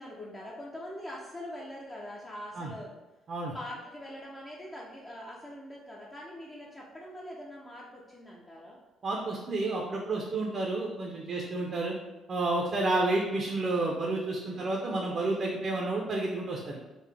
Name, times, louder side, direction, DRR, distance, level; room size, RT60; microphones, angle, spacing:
voice 1, 0.0-2.9 3.4-8.8 11.3-11.7 14.5-14.7 15.5-15.7, left 1 dB, 20° left, -3 dB, 0.4 m, -44 dB
voice 2, 9.0-11.9 12.3-16.8, right 2 dB, 45° right, -1 dB, 0.5 m, -30 dB
3.7 x 2.0 x 3.3 m, 1.1 s
cardioid pair, 110°, 0 cm